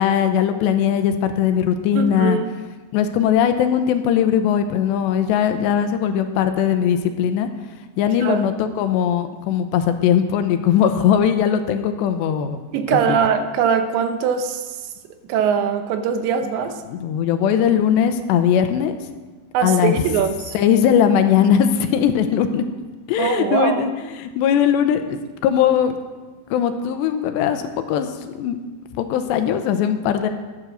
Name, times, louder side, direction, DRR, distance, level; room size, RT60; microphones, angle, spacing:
voice 1, 0.0-2.4 2.9-7.5 8.0-12.6 12.9-13.2 16.9-18.9 19.6-20.0 20.5-22.6 23.1-23.9 24.2-25.9 26.5-28.1 28.4-28.6 29.0-30.3, left 8 dB, 85° left, 8 dB, 3.0 m, -19 dB
voice 2, 2.0-2.5 8.2-8.4 12.7-14.6 15.3-16.8 19.5-20.6 23.2-23.8, right 7 dB, 85° right, 8 dB, 3.2 m, -21 dB
12.0 x 11.0 x 6.3 m, 1.3 s
omnidirectional pair, 5.1 m